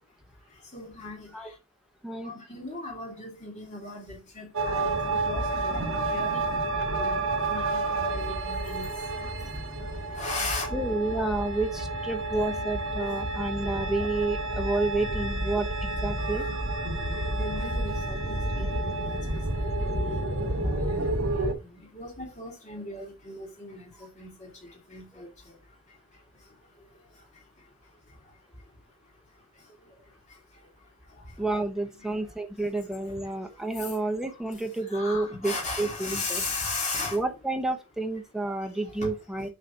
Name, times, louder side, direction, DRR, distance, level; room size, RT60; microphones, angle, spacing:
voice 1, 0.4-1.6 2.2-6.6 6.9-10.7 13.0-13.1 15.1-15.2 16.1-16.5 17.1-31.6 32.0-32.7 33.1-37.2 38.4-39.1, left 3 dB, 30° left, 2.6 m, -39 dB
sound 1, 4.5-21.5, right 2 dB, 65° right, 2.3 m, -30 dB
voice 2, 10.7-16.5 31.4-36.4 37.1-39.5, right 2 dB, ahead, 1.0 m, -30 dB
6.7 x 5.0 x 5.6 m
head